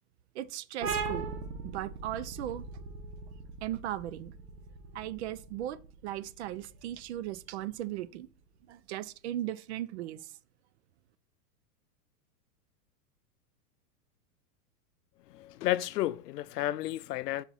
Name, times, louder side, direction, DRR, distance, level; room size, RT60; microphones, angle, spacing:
voice 1, 0.3-1.2 1.6-2.6 3.6-4.3 4.9-5.8 6.0-8.3 8.7-10.3, right 13 dB, 45° right, 0.4 m, -37 dB
sound 1, 0.8-8.1, right 4 dB, 75° right, 1.7 m, -40 dB
voice 2, 15.3-17.4, left 14 dB, 80° left, 0.6 m, -32 dB
5.6 x 4.5 x 4.0 m
hypercardioid pair, 130°, 47 cm